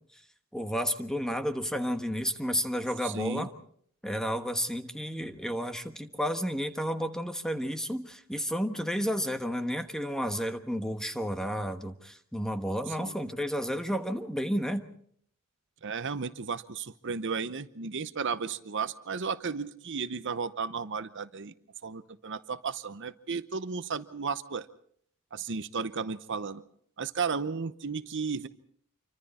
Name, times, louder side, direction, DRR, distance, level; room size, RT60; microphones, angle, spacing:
voice 1, 0.5-3.5 4.0-14.8, equal, 5° left, 8 dB, 1.2 m, -31 dB
voice 2, 3.0-3.5 13.0-13.1 15.8-21.5 21.8-24.7 25.3-26.6 27.0-28.5, right 5 dB, 55° right, 13 dB, 0.8 m, -34 dB
27.0 x 24.5 x 4.3 m, 0.62 s
head